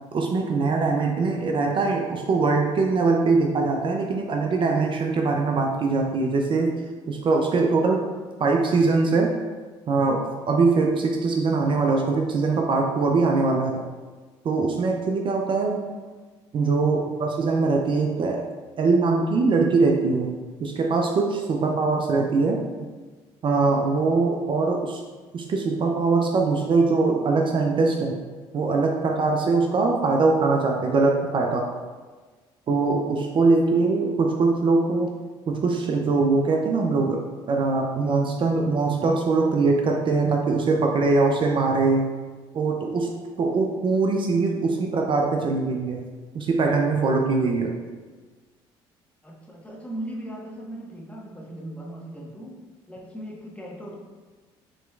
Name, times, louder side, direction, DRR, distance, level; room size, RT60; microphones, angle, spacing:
voice 1, 0.1-6.8 7.1-8.0 8.4-9.3 9.9-13.8 14.4-15.8 16.5-18.4 18.8-20.3 20.6-22.6 23.4-25.0 25.3-28.2 28.5-31.7 32.7-35.1 35.5-37.2 37.5-42.1 42.5-46.0 46.3-47.7, right 3 dB, 45° right, 1 dB, 0.5 m, -22 dB
voice 2, 49.2-54.0, right 1 dB, 10° left, -3 dB, 1.2 m, -38 dB
6.1 x 3.0 x 2.4 m, 1.4 s
supercardioid pair, 70°, 11 cm